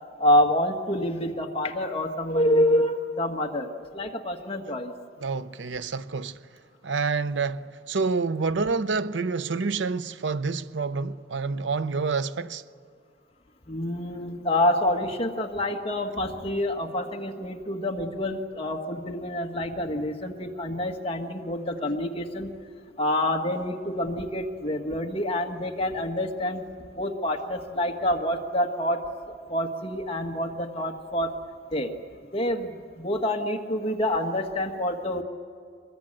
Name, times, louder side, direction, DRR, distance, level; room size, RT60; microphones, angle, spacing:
voice 1, 0.2-4.9 13.7-22.5 23.0-26.6 27.0-29.0 29.3-31.3 31.7-31.9 32.3-35.2, left 1 dB, 30° left, 1.6 m, -27 dB
voice 2, 5.2-6.4 6.8-12.6, right 4 dB, 85° right, 0.7 m, -28 dB
24.0 x 21.5 x 8.8 m
head